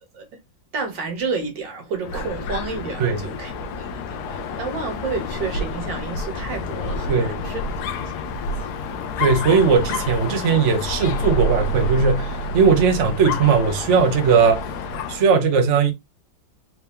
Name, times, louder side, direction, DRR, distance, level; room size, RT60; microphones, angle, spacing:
voice 1, 0.7-7.6 7.9-8.0 8.3-8.7, right 4 dB, 70° right, 1.8 m, -31 dB
Dog, 2.0-15.3, left 2 dB, 70° left, 1.0 m, -28 dB
voice 2, 9.2-14.6 15.1-15.9, right 5 dB, 50° right, 1.0 m, -18 dB
4.5 x 2.8 x 3.4 m
omnidirectional pair, 2.1 m